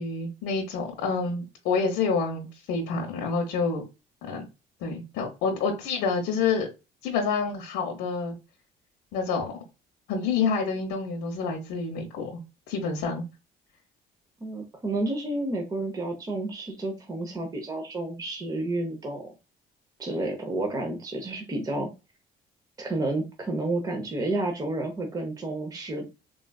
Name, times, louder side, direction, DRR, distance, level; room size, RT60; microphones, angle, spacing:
voice 1, 0.0-3.8 4.3-4.4 4.8-6.7 7.0-8.3 9.1-9.5 10.1-12.3 12.7-13.3, left 5 dB, 85° left, 0.7 m, -28 dB
voice 2, 14.4-19.3 20.0-21.9 22.8-26.1, right 2 dB, 20° right, 0.7 m, -30 dB
3.8 x 2.3 x 2.2 m
cardioid pair, 110°, 17 cm